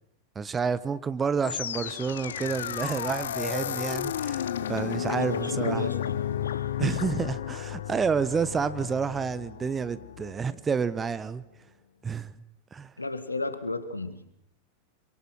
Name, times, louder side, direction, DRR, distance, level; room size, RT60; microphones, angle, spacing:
voice 1, 0.3-5.8 6.8-11.4 12.0-12.3 12.7-12.9, right 6 dB, 20° right, 1.2 m, -29 dB
sound 1, 1.4-10.6, left 10 dB, 65° left, 1.0 m, -33 dB
voice 2, 5.1-7.0 13.0-14.2, left 2 dB, 80° left, 2.2 m, -34 dB
27.0 x 24.5 x 6.3 m
figure-of-eight pair, 90°, 0 cm